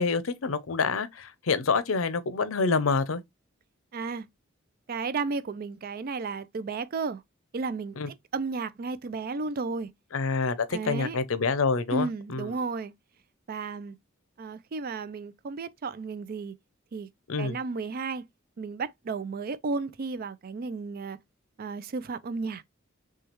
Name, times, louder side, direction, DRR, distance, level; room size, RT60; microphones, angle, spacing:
voice 1, 0.0-3.2 8.0-8.1 10.1-12.5 17.3-17.6, left 4 dB, 80° left, 0.6 m, -27 dB
voice 2, 3.9-4.3 4.9-7.2 7.5-9.9 10.7-11.2 11.9-12.9 13.5-14.0 14.4-16.6 16.9-17.1 17.4-18.2 18.6-21.2 21.6-22.6, right 4 dB, 45° right, 0.4 m, -33 dB
6.1 x 2.3 x 3.0 m
head